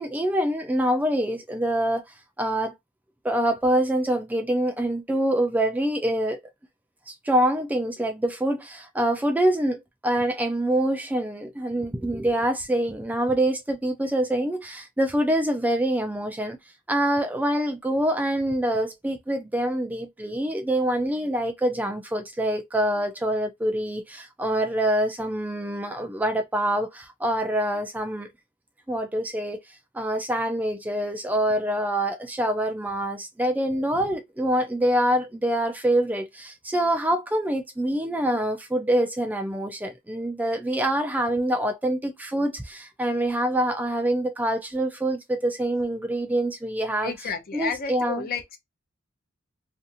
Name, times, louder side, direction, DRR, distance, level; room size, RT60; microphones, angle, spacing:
voice 1, 0.0-2.0 2.4-2.7 3.2-6.4 7.1-16.6 16.9-28.3 28.9-29.6 29.9-48.3, right 1 dB, 10° right, 0.3 m, -25 dB
voice 2, 47.0-48.6, left 5 dB, 45° left, 0.6 m, -32 dB
2.7 x 2.5 x 2.5 m
head